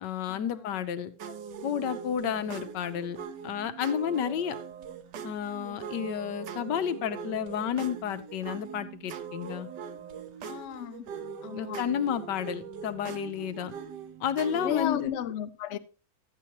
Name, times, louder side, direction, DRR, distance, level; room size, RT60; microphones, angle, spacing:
voice 1, 0.0-1.1 1.6-3.2 3.4-4.6 5.2-9.7 11.5-13.7 14.2-15.1, left 9 dB, 70° left, 1.3 m, -31 dB
sound 1, 1.2-15.1, right 6 dB, 65° right, 1.3 m, -41 dB
voice 2, 10.4-11.0 11.4-11.8 14.5-15.8, left 9 dB, 90° left, 0.6 m, -34 dB
12.5 x 8.4 x 2.9 m
omnidirectional pair, 2.1 m